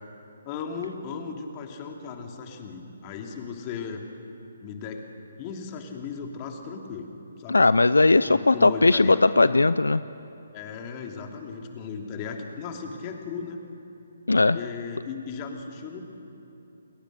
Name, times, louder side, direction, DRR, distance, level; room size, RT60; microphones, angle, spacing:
voice 1, 0.4-4.0 4.6-5.0 5.4-7.1 7.4-7.6 8.3-9.2 10.5-13.6 14.5-16.0, left 5 dB, 30° left, 3 dB, 2.8 m, -36 dB
voice 2, 7.5-10.0 14.3-14.6, left 3 dB, 85° left, 15 dB, 0.5 m, -18 dB
30.0 x 20.5 x 6.7 m, 2.8 s
figure-of-eight pair, 140°, 0 cm